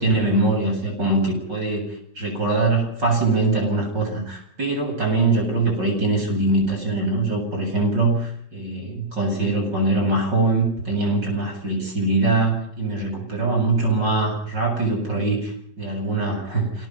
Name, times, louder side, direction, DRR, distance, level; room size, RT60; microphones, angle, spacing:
voice 1, 0.0-16.9, right 2 dB, 35° right, 1 dB, 8.5 m, -22 dB
28.5 x 18.0 x 5.6 m, 0.70 s
omnidirectional pair, 3.3 m